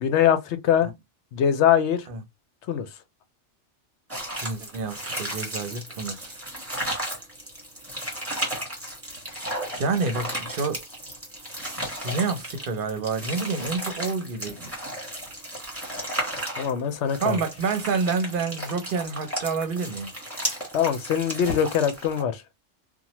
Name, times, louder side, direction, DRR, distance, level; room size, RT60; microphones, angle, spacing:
voice 1, 0.0-0.9 1.3-2.1 2.7-2.9 16.6-17.4 20.7-22.4, left 9 dB, 75° left, 0.9 m, -22 dB
sound 1, 4.1-22.2, right 1 dB, 10° right, 1.2 m, -34 dB
voice 2, 4.4-6.4 9.7-10.8 12.0-14.7 17.2-20.1, right 4 dB, 55° right, 0.7 m, -28 dB
2.9 x 2.2 x 2.9 m
omnidirectional pair, 1.2 m